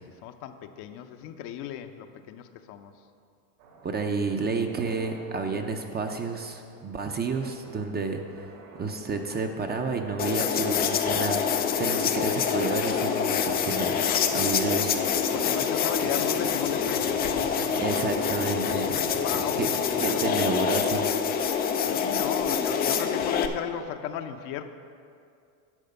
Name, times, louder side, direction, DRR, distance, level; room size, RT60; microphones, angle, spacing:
voice 1, 0.1-2.9 15.3-17.4 18.9-20.4 21.7-24.6, left 9 dB, 55° left, 8 dB, 0.7 m, -36 dB
sound 1, 3.6-20.4, right 3 dB, 70° right, 2.3 m, -45 dB
voice 2, 3.8-8.5 8.8-11.4 11.8-14.0 14.3-15.0 17.8-18.9 19.6-19.7 20.0-21.1, right 4 dB, 20° right, 4 dB, 0.6 m, -30 dB
sound 2, 10.2-23.5, left 7 dB, 20° left, 0.3 m, -26 dB
10.5 x 4.9 x 6.7 m, 2.4 s
supercardioid pair, 105°, 49 cm